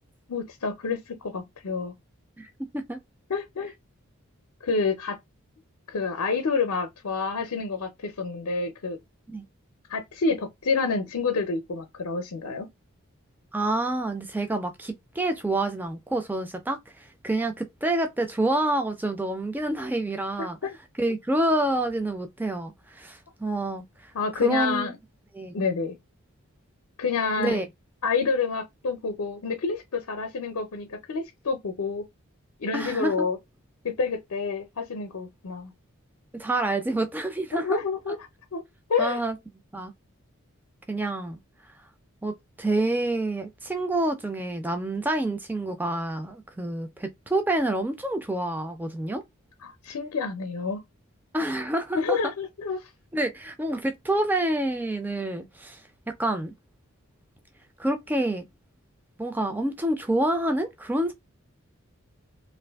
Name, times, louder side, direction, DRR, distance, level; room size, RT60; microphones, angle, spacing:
voice 1, 0.3-1.9 3.3-3.7 4.6-5.2 5.9-9.0 9.9-12.7 20.4-20.8 24.1-25.0 25.5-25.9 27.0-27.6 28.0-32.0 32.6-33.4 33.8-35.7 37.5-38.2 38.5-38.6 38.9-39.2 49.6-50.8 51.9-52.9, left 4 dB, 75° left, 0.5 m, -28 dB
voice 2, 2.4-3.0 9.3-9.4 13.5-20.6 21.0-24.1 24.4-24.9 25.3-25.6 27.4-27.7 32.7-33.3 36.4-37.8 38.1-38.2 39.0-39.4 39.7-39.9 40.9-41.4 42.2-42.3 42.6-49.2 51.3-52.2 53.1-55.8 56.2-56.5 57.8-58.5 59.2-61.1, right 1 dB, 10° right, 0.3 m, -28 dB
2.5 x 2.5 x 3.3 m
head